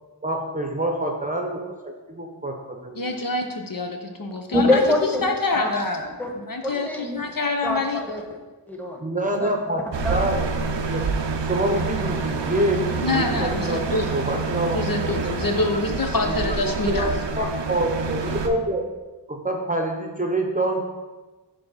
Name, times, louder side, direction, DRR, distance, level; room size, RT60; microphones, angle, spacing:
voice 1, 0.2-3.1 6.7-6.8 9.0-9.8 10.1-10.4 10.9-11.0 11.4-15.4 16.2-18.8 19.3-20.9, right 1 dB, 20° right, 2 dB, 0.8 m, -26 dB
voice 2, 3.0-4.8 5.2-6.1 6.3-8.0 13.0-14.1 14.7-17.1, left 3 dB, 55° left, 3 dB, 0.8 m, -26 dB
voice 3, 4.5-5.2 5.5-5.7 6.2-6.3 6.6-7.2 7.6-8.4 8.7-9.0 9.3-9.5 10.0-10.7, left 1 dB, 5° left, 0 dB, 1.4 m, -25 dB
sound 1, 9.9-18.5, right 4 dB, 90° right, 0.7 m, -27 dB
7.4 x 3.4 x 5.7 m, 1.2 s
wide cardioid pair, 50°, 42 cm